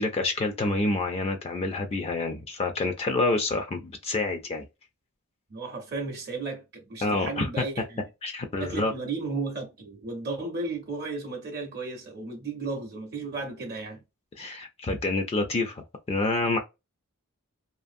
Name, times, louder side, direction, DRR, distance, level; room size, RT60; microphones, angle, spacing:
voice 1, 0.0-4.7 7.0-7.6 8.2-8.9 14.4-16.6, left 2 dB, 25° left, 0.3 m, -28 dB
voice 2, 5.5-8.0 8.6-14.0, right 3 dB, 45° right, 0.6 m, -34 dB
2.5 x 2.4 x 2.5 m
head